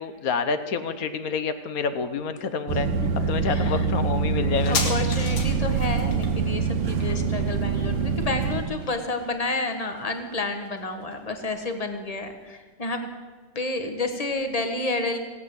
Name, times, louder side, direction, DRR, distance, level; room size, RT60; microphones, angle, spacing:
voice 1, 0.0-2.9 3.3-4.9, left 5 dB, 55° left, 11 dB, 1.2 m, -28 dB
sound 1, 2.7-8.6, right 5 dB, 85° right, 1.6 m, -25 dB
voice 2, 2.8-3.9 4.4-13.1 13.5-15.2, left 2 dB, 25° left, 6 dB, 1.1 m, -30 dB
sound 2, 4.5-11.6 11.9-12.0, left 4 dB, 85° left, 2.5 m, -37 dB
17.0 x 8.5 x 7.6 m, 1.4 s
omnidirectional pair, 2.1 m